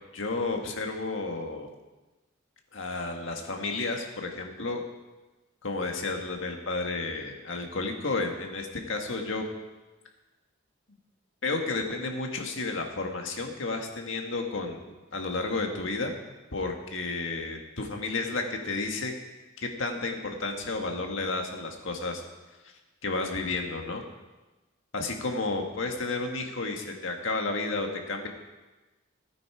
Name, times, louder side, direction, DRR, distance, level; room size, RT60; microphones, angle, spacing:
voice 1, 0.1-1.7 2.7-4.8 5.6-9.4 11.4-16.2 16.5-19.1 19.6-22.2 23.0-24.0 24.9-28.3, left 3 dB, 70° left, 3 dB, 1.7 m, -32 dB
15.5 x 9.2 x 4.9 m, 1.1 s
head